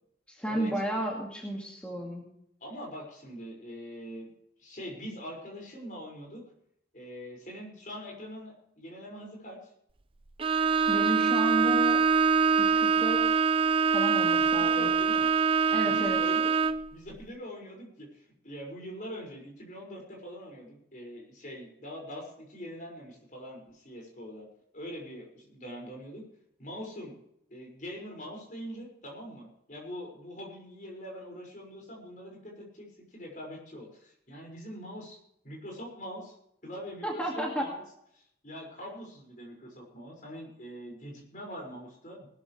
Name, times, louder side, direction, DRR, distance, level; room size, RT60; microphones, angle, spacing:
voice 1, 0.3-2.3 10.9-12.0 12.6-13.5 13.9-14.9 15.7-16.2 37.0-37.7, right 1 dB, 5° left, -2 dB, 2.1 m, -33 dB
voice 2, 2.6-4.3 4.6-6.4 6.9-9.6 14.4-15.3 15.8-16.5 16.9-24.5 24.7-26.2 26.6-27.1 27.5-35.2 35.4-36.3 36.6-37.8 38.1-42.3, equal, 45° left, 0 dB, 5.8 m, -43 dB
Bowed string instrument, 10.4-16.9, right 5 dB, 30° right, 0.6 m, -24 dB
19.5 x 13.5 x 3.3 m, 0.74 s
head